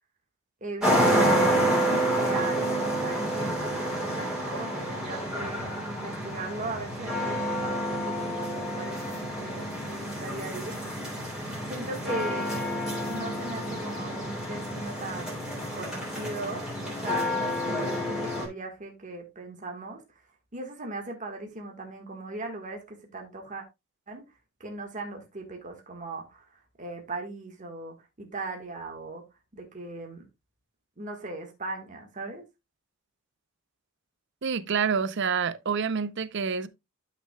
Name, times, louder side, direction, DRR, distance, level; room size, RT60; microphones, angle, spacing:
voice 1, 0.6-10.8 11.6-12.6 13.1-15.4 15.7-20.0 20.5-23.6 24.1-24.2 24.6-29.2 29.5-30.3 31.0-32.4, right 2 dB, 40° right, 1.5 m, -38 dB
sound 1, 0.8-18.5, equal, 5° right, 3.1 m, -29 dB
voice 2, 34.4-36.7, right 6 dB, 60° right, 0.6 m, -27 dB
12.0 x 5.8 x 2.2 m
head